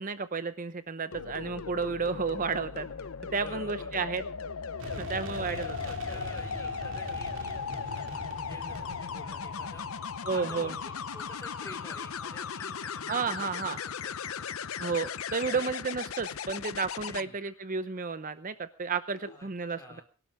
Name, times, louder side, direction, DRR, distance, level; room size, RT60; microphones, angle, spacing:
voice 1, 0.0-2.9 3.3-4.2 5.0-5.8 10.3-10.7 13.1-13.8 14.8-20.0, right 5 dB, 40° right, 12 dB, 0.8 m, -32 dB
sound 1, 1.1-17.2 19.1-19.4, left 6 dB, 70° left, 0.7 m, -37 dB
voice 2, 3.4-4.0 5.2-9.9 10.3-14.7 15.4-15.7 17.0-17.3 19.1-19.5 19.7-20.0, left 1 dB, 15° left, 2 dB, 4.7 m, -50 dB
sound 2, 4.8-12.5, right 1 dB, 60° right, 2.4 m, -45 dB
22.5 x 12.0 x 3.7 m, 0.37 s
head